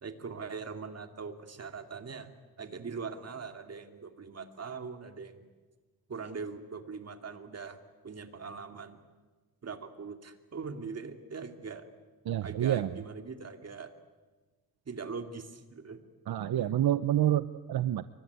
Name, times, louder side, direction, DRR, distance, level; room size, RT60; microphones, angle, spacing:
voice 1, 0.0-2.3 2.6-5.5 6.1-7.8 8.0-9.0 9.6-11.9 12.4-13.9 14.9-16.0 16.6-16.8, right 5 dB, 40° right, 7 dB, 2.5 m, -41 dB
voice 2, 12.3-12.9 16.3-18.0, right 12 dB, 70° right, 13 dB, 0.8 m, -28 dB
27.0 x 23.0 x 9.5 m, 1.3 s
wide cardioid pair, 130°, 39 cm